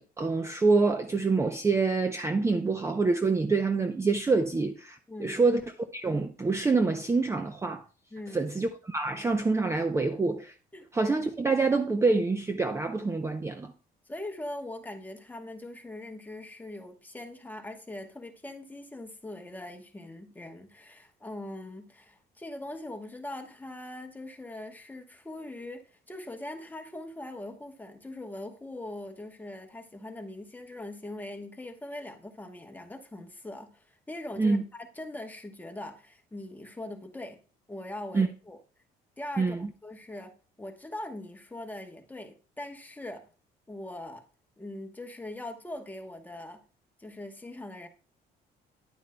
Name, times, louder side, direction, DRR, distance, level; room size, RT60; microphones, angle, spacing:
voice 1, 0.0-5.6 5.9-7.8 8.3-10.5 10.9-13.7 34.4-34.6 38.1-38.3 39.4-39.6, right 3 dB, 15° right, 0.6 m, -26 dB
voice 2, 5.1-5.4 8.1-8.5 10.7-10.8 14.1-37.4 37.7-38.6 39.2-40.3 40.6-43.3 43.7-44.2 44.6-46.6 47.0-47.9, left 1 dB, 10° left, 1.1 m, -41 dB
9.7 x 9.0 x 2.2 m
cardioid pair, 110°, 17 cm